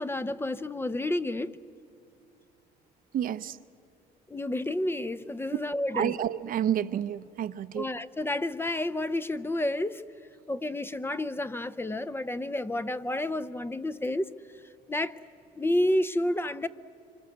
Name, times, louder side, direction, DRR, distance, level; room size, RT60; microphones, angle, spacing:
voice 1, 0.0-1.6 4.3-6.1 7.7-10.0 10.5-14.3 14.9-15.2 15.6-16.7, left 1 dB, 15° left, 13 dB, 0.7 m, -30 dB
voice 2, 3.1-3.6 5.9-7.9, right 10 dB, 55° right, 12 dB, 0.8 m, -29 dB
26.0 x 26.0 x 7.9 m, 2.7 s
cardioid pair, 110°, 17 cm